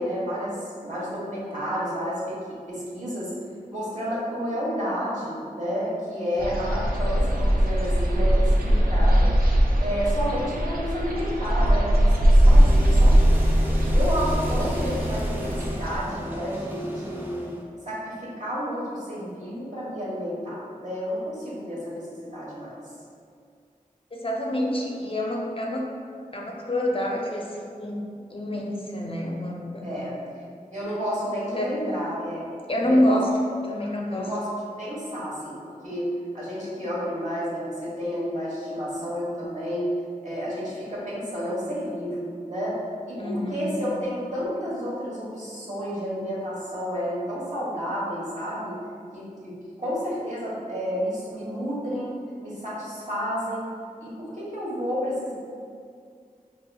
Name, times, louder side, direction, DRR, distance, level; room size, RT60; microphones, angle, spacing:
voice 1, 0.0-3.3 3.7-9.3 9.8-13.4 13.9-17.5 17.8-22.8 29.8-30.2 30.7-32.4 32.8-33.2 33.8-39.9 40.2-42.8 43.0-48.8 49.1-52.1 52.4-53.7 54.0-55.3, equal, 55° right, -8 dB, 1.1 m, -31 dB
sound 1, 6.4-16.0, equal, 85° right, 0.4 m, -20 dB
sound 2, 12.3-17.6, equal, 15° right, 0.5 m, -33 dB
voice 2, 24.1-25.9 26.3-30.0 31.5-31.7 32.7-33.3 33.7-34.3 43.2-43.8, left 1 dB, 40° left, -1 dB, 0.4 m, -27 dB
4.8 x 2.4 x 2.2 m, 2.2 s
wide cardioid pair, 60°, 15 cm